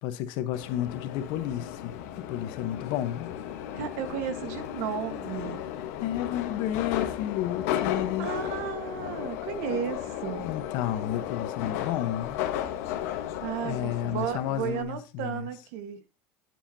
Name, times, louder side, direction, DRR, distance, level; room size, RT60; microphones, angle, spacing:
voice 1, 0.0-3.4 6.0-8.3 10.4-12.4 13.6-15.4, left 12 dB, 65° left, 1.0 m, -31 dB
Subway metro underground, 0.5-14.8, left 11 dB, 85° left, 1.2 m, -34 dB
voice 2, 3.7-5.6 8.2-10.5 13.4-16.0, right 8 dB, 80° right, 1.4 m, -34 dB
10.0 x 7.3 x 2.7 m
cardioid pair, 150°, 8 cm